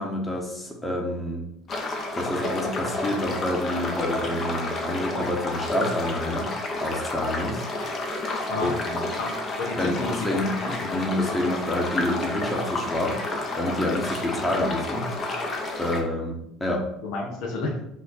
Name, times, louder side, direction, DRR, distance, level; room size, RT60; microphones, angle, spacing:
voice 1, 0.0-1.4 2.1-6.5 6.8-7.7 8.6-9.0 9.8-15.4 15.8-16.9, left 1 dB, 15° left, 0 dB, 1.1 m, -28 dB
sound 1, 1.7-16.0, left 2 dB, 45° left, 1.0 m, -30 dB
voice 2, 9.2-10.7 17.0-17.8, left 3 dB, 70° left, 1 dB, 0.9 m, -31 dB
4.2 x 2.7 x 4.2 m, 0.79 s
hypercardioid pair, 75°, 0 cm